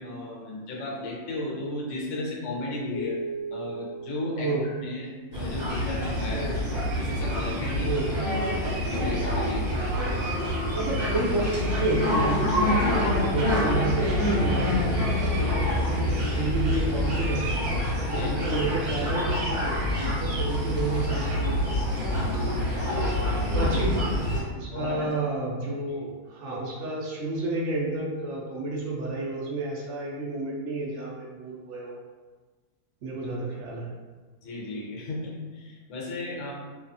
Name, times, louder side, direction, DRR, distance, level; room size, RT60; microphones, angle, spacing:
voice 1, 0.0-3.2 3.5-4.5 4.8-6.5 6.9-7.9 8.2-9.9 18.1-18.5 24.6-25.1 25.9-26.0 34.4-36.5, left 2 dB, 60° left, -4 dB, 0.9 m, -34 dB
sound 1, 2.9-5.5, right 1 dB, 90° left, 0.3 m, -37 dB
sound 2, 5.3-24.4, left 1 dB, 40° right, 1.1 m, -26 dB
voice 2, 9.9-10.2 10.7-15.8 16.3-17.7 18.1-22.6 23.5-24.1 24.5-32.0 33.0-33.9, right 2 dB, 70° right, -4 dB, 0.7 m, -31 dB
2.7 x 2.3 x 2.5 m, 1.3 s
omnidirectional pair, 1.6 m